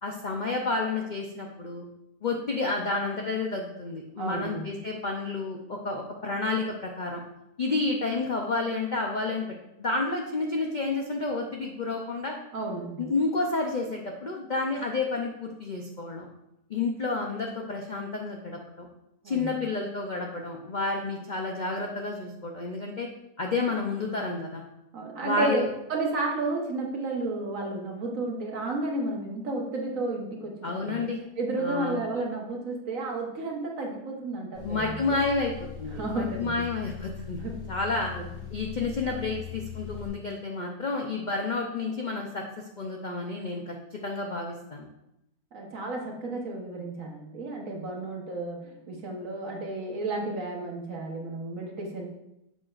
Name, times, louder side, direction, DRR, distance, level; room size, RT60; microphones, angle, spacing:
voice 1, 0.0-1.8 2.2-7.2 7.6-9.5 9.8-12.3 13.0-16.3 16.7-18.9 19.2-23.1 23.4-24.6 25.2-25.7 30.6-31.2 31.6-32.0 34.6-37.4 37.7-38.1 38.5-42.4 42.8-44.9, left 3 dB, 55° left, 0 dB, 0.5 m, -30 dB
voice 2, 4.2-4.7 12.5-13.1 19.2-19.7 24.9-35.2 35.9-36.6 37.4-37.6 38.1-38.4 45.5-52.1, right 2 dB, 55° right, 0 dB, 1.4 m, -32 dB
sound 1, 34.5-40.1, left 9 dB, 30° left, 2.8 m, -40 dB
7.5 x 6.6 x 2.5 m, 0.85 s
omnidirectional pair, 1.7 m